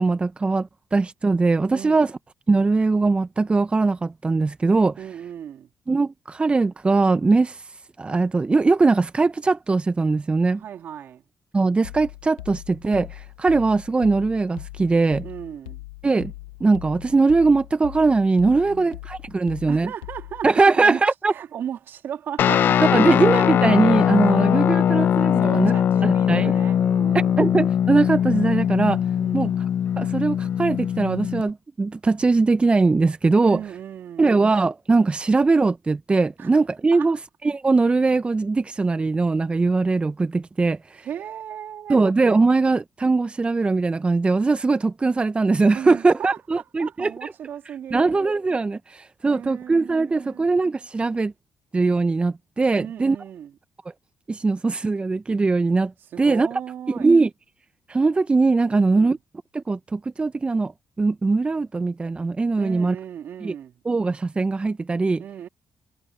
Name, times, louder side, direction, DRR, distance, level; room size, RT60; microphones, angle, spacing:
voice 1, 0.0-2.1 2.5-5.0 5.9-7.7 8.0-10.6 11.5-15.2 16.0-16.3 16.6-19.9 20.4-21.3 22.9-25.7 26.0-26.5 27.4-29.0 29.3-29.7 30.0-33.6 34.2-41.1 41.9-47.3 47.9-51.3 51.7-53.2 54.3-55.9 56.2-56.5 56.9-57.3 57.9-59.2 59.5-60.7 61.0-62.9 63.4-63.5 63.8-65.2, right 3 dB, 30° right, 0.9 m, -21 dB
voice 2, 1.7-2.0 5.0-5.7 10.5-11.2 15.2-15.8 18.6-18.9 19.4-21.0 21.3-23.2 24.3-24.8 25.4-27.5 29.2-29.6 33.4-34.5 36.4-36.5 36.9-37.2 41.0-42.0 45.7-48.1 49.2-50.5 52.8-53.5 56.1-57.2 58.7-59.2 62.6-63.8 65.2-65.5, right 9 dB, 65° right, 3.2 m, -36 dB
sound 1, 11.8-20.5, left 18 dB, 90° left, 1.1 m, -40 dB
Guitar, 22.4-31.5, left 9 dB, 60° left, 0.7 m, -21 dB
hypercardioid pair, 50°, 4 cm